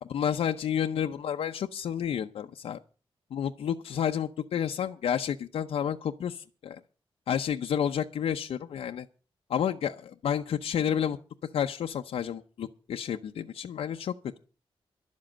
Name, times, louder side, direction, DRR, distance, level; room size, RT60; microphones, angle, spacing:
voice 1, 0.0-2.8 3.3-6.8 7.3-9.1 9.5-11.2 11.5-14.1, left 9 dB, 80° left, 5 dB, 0.7 m, -30 dB
11.5 x 7.4 x 8.8 m, 0.36 s
wide cardioid pair, 160°, 10 cm